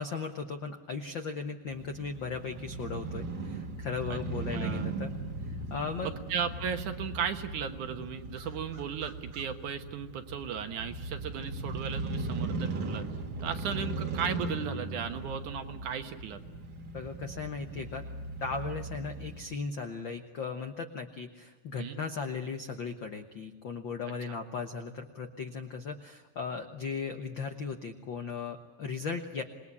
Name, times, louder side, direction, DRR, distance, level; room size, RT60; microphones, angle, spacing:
voice 1, 0.0-5.1 5.5-6.1 16.9-18.0 18.4-29.4, left 5 dB, 65° left, 6 dB, 1.2 m, -37 dB
Crow / Motorcycle, 1.7-19.5, right 2 dB, 40° right, 1.9 m, -38 dB
voice 2, 4.5-4.9 6.0-13.0 13.4-16.4 21.8-22.0, right 7 dB, 65° right, 7 dB, 2.6 m, -36 dB
27.5 x 20.5 x 9.8 m, 1.2 s
omnidirectional pair, 4.0 m